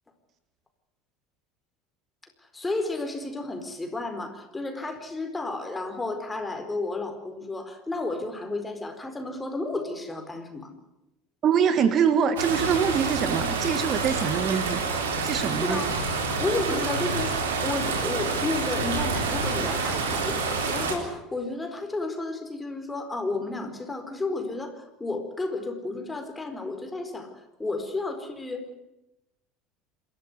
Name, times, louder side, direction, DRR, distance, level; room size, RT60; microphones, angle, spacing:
voice 1, 2.5-10.7 15.6-15.9 16.4-27.3 27.6-28.8, left 2 dB, 15° left, 6 dB, 4.5 m, -32 dB
voice 2, 11.4-14.8 15.2-15.8, right 7 dB, 40° right, 11 dB, 1.6 m, -24 dB
sound 1, 12.4-20.9, right 4 dB, 70° right, 3.8 m, -28 dB
27.0 x 13.5 x 9.5 m, 0.92 s
figure-of-eight pair, 70°, 0 cm